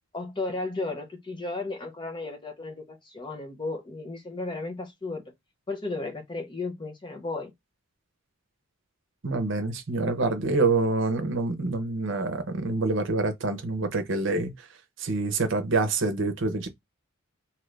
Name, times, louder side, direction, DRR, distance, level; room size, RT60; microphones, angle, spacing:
voice 1, 0.1-5.2 5.7-7.5, left 3 dB, 20° left, 0.6 m, -34 dB
voice 2, 9.2-14.5 15.0-16.7, right 3 dB, 60° right, 0.7 m, -26 dB
2.7 x 2.5 x 3.2 m
head